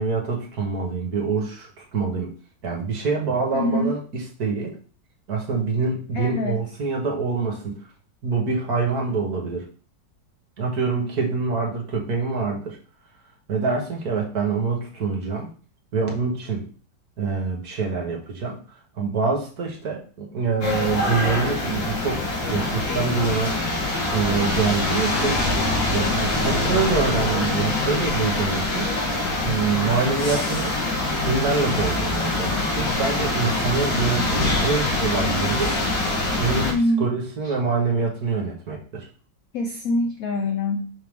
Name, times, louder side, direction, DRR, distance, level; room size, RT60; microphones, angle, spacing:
voice 1, 0.0-2.3 2.6-4.7 5.3-7.7 8.2-9.7 10.6-12.8 13.5-15.5 15.9-16.7 17.2-18.6 19.0-23.6 24.1-25.4 25.9-28.9 29.4-30.8 31.2-35.8 36.4-39.1, right 4 dB, 50° right, 0 dB, 1.8 m, -25 dB
voice 2, 3.5-3.9 6.1-6.6 36.6-37.1 39.5-40.9, left 1 dB, 80° left, 5 dB, 0.7 m, -24 dB
sound 1, 20.6-36.7, left 2 dB, 65° left, 2.3 m, -24 dB
5.7 x 4.7 x 3.6 m, 0.39 s
omnidirectional pair, 2.2 m